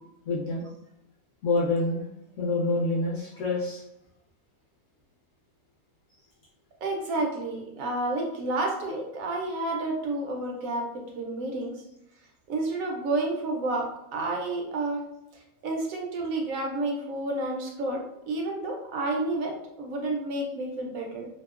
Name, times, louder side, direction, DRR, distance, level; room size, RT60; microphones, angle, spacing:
voice 1, 0.3-0.6 1.4-2.0 2.4-3.8, left 2 dB, 65° left, -6 dB, 0.9 m, -26 dB
voice 2, 6.8-11.7 12.5-15.0 15.6-21.3, right 2 dB, 70° right, 0 dB, 0.9 m, -30 dB
2.8 x 2.0 x 2.3 m, 0.81 s
omnidirectional pair, 1.7 m